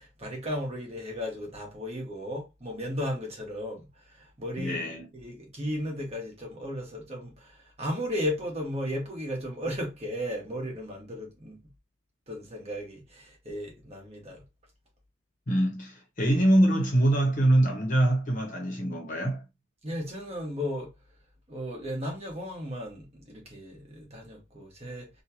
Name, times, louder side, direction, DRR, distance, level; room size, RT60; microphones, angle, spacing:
voice 1, 0.0-11.6 12.3-14.4 19.8-20.9 21.5-25.1, equal, 30° right, 1.1 m, -35 dB
voice 2, 4.6-5.1 15.5-19.4, right 1 dB, 35° left, 0.9 m, -24 dB
3.0 x 2.3 x 2.8 m
head